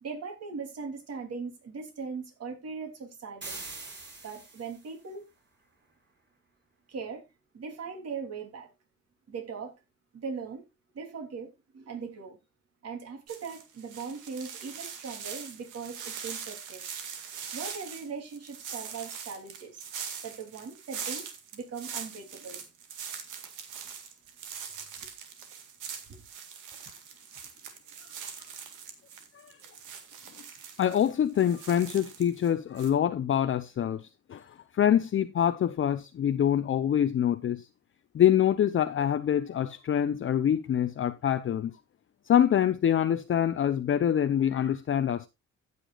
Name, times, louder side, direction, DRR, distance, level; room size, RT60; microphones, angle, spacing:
voice 1, 0.0-3.6 4.2-5.2 6.9-7.3 7.5-8.7 9.3-9.7 10.1-10.6 10.9-12.4 12.8-16.8 17.5-19.9 20.2-21.3 21.5-22.7 26.1-26.2, right 5 dB, 55° right, 3.3 m, -39 dB
sound 1, 3.4-5.0, right 3 dB, 35° right, 4.9 m, -43 dB
sound 2, 13.3-32.5 32.8-32.9, right 7 dB, 85° right, 2.0 m, -42 dB
voice 2, 30.8-37.7 38.1-41.7 42.3-45.3, left 9 dB, 40° left, 0.6 m, -25 dB
15.5 x 6.8 x 2.4 m
cardioid pair, 90°, 30 cm